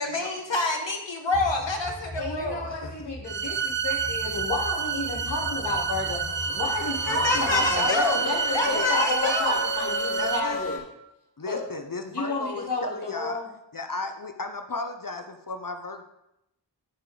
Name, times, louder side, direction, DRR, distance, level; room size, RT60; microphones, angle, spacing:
voice 1, 0.0-2.7 7.1-8.2 8.5-9.5, left 2 dB, 80° left, 2 dB, 1.6 m, -27 dB
sound 1, 1.3-7.9, left 2 dB, 15° left, 0.7 m, -40 dB
voice 2, 2.2-10.7 11.4-11.6 12.1-13.5, left 2 dB, 65° left, -6 dB, 3.4 m, -31 dB
sound 2, 3.3-10.4, right 6 dB, 70° right, 0.7 m, -29 dB
sound 3, 5.3-10.8, left 1 dB, 30° left, 3.1 m, -35 dB
voice 3, 7.4-9.5 10.2-10.6 11.4-13.4 13.7-16.0, left 3 dB, 50° left, 6 dB, 0.8 m, -34 dB
14.5 x 5.1 x 3.8 m, 0.86 s
wide cardioid pair, 45°, 44 cm